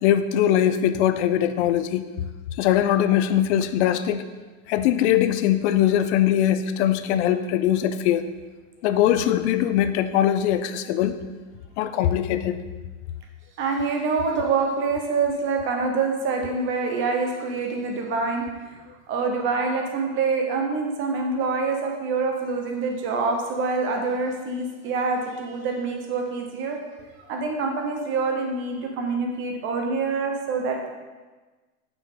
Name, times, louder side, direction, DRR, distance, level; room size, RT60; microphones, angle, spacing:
voice 1, 0.0-2.1 2.6-4.2 4.7-8.2 8.8-11.2 11.8-12.6, left 11 dB, 55° left, 11 dB, 0.6 m, -21 dB
voice 2, 13.6-18.7 19.1-26.8 27.3-30.9, right 4 dB, 25° right, 2 dB, 1.0 m, -26 dB
8.9 x 6.0 x 3.8 m, 1.3 s
supercardioid pair, 165°, 43 cm